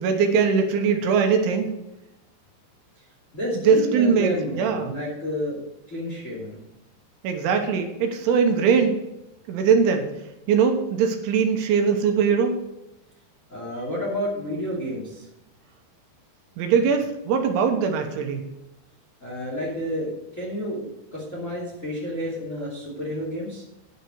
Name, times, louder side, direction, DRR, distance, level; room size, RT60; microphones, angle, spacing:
voice 1, 0.0-1.7 3.7-4.9 7.2-9.0 9.5-10.1 10.5-12.6 16.6-18.4, right 6 dB, 80° right, 5 dB, 3.5 m, -21 dB
voice 2, 3.3-5.6 5.9-6.6 13.5-15.3 19.2-23.6, equal, 20° left, -4 dB, 2.2 m, -30 dB
10.5 x 6.2 x 6.3 m, 0.90 s
omnidirectional pair, 5.4 m